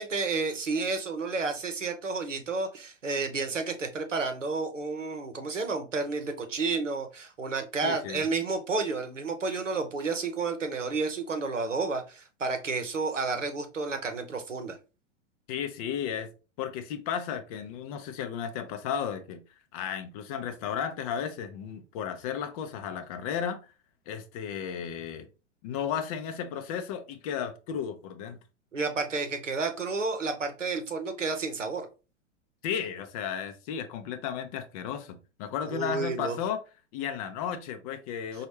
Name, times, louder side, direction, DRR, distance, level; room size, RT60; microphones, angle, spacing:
voice 1, 0.0-14.8 28.7-31.9 35.7-36.4, right 4 dB, 80° right, 0.8 m, -31 dB
voice 2, 7.8-8.2 15.5-16.3 16.6-19.4 19.7-23.6 24.1-25.3 25.6-28.4 32.6-36.6 36.9-38.5, left 8 dB, 30° left, 0.5 m, -34 dB
5.1 x 2.3 x 3.1 m
figure-of-eight pair, 95°, 37 cm